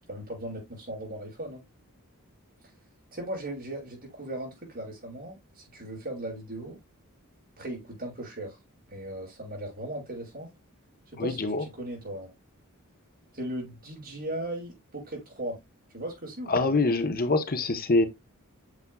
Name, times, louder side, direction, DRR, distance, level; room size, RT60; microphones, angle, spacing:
voice 1, 0.1-1.6 3.1-6.8 7.6-8.6 8.9-10.5 11.1-12.3 13.3-15.6 15.9-16.8, right 1 dB, 45° right, 5.3 m, -37 dB
voice 2, 11.2-11.6 16.5-18.1, left 3 dB, 40° left, 0.9 m, -25 dB
8.4 x 6.7 x 2.2 m
head